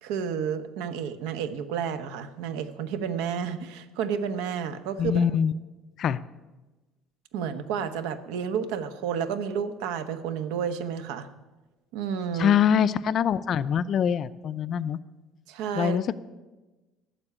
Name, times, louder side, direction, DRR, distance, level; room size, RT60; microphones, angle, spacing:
voice 1, 0.0-5.2 7.3-11.3 11.9-12.6 15.5-16.0, right 7 dB, 90° right, 11 dB, 1.1 m, -31 dB
voice 2, 5.0-5.5 6.0-6.2 12.4-15.0 15.8-16.2, left 8 dB, 35° left, 15 dB, 0.4 m, -24 dB
14.0 x 7.0 x 9.9 m, 1.2 s
cardioid pair, 170°, 0 cm